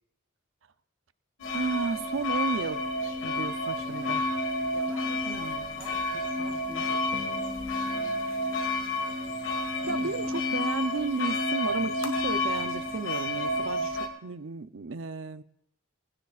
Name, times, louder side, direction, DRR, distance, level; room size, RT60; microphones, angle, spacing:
sound 1, 1.4-14.1, left 1 dB, 65° left, 1.8 m, -30 dB
voice 1, 1.5-2.8 3.2-4.2 5.3-5.6 9.9-15.4, right 4 dB, 60° right, 11 dB, 0.6 m, -33 dB
voice 2, 4.7-7.4 7.8-8.2 9.7-10.7 13.5-13.8, right 1 dB, 10° right, -6 dB, 4.9 m, -48 dB
sound 2, 7.1-10.6, left 4 dB, 80° left, 1.9 m, -49 dB
20.5 x 17.0 x 2.5 m, 0.73 s
head